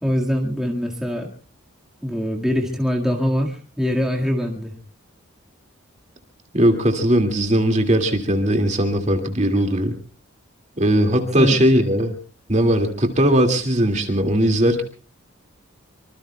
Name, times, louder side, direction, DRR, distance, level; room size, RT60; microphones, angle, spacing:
voice 1, 0.0-1.3 2.0-4.8 11.4-11.6, equal, ahead, -1 dB, 1.9 m, -23 dB
voice 2, 6.5-10.0 10.8-12.1 12.5-14.8, equal, 35° right, 5 dB, 2.2 m, -19 dB
25.0 x 25.0 x 2.3 m, 0.38 s
head